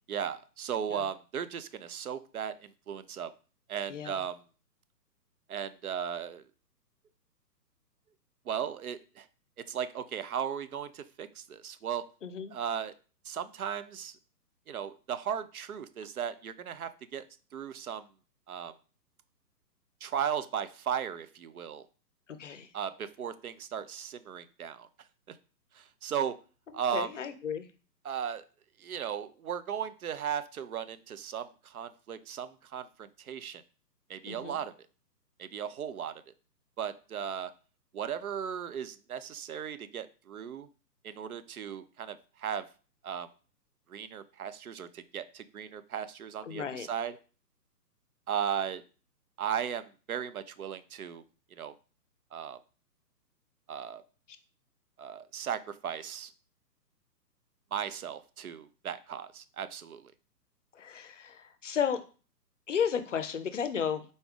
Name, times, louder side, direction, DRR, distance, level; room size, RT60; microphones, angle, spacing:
voice 1, 0.1-3.3 3.7-4.4 5.5-6.4 8.5-9.3 9.7-12.1 12.5-12.9 13.2-14.2 14.7-17.2 17.5-18.1 18.5-18.7 20.0-21.8 22.7-24.9 25.3-25.4 25.7-26.4 26.7-27.1 28.0-28.4 28.8-33.6 34.1-34.7 35.4-36.1 36.8-37.5 37.9-40.7 41.0-42.7 43.0-43.3 43.9-47.2 48.3-48.8 49.4-51.2 51.5-51.7 52.3-52.6 53.7-54.0 55.0-56.3 57.7-60.1, right 8 dB, 60° right, 13 dB, 0.5 m, -36 dB
voice 2, 3.9-4.2 12.2-12.5 22.4-22.7 26.9-27.7 34.2-34.6 46.4-46.9 60.7-62.0 62.7-64.0, left 7 dB, 50° left, 11 dB, 0.5 m, -33 dB
4.1 x 3.3 x 3.4 m, 0.36 s
figure-of-eight pair, 130°, 49 cm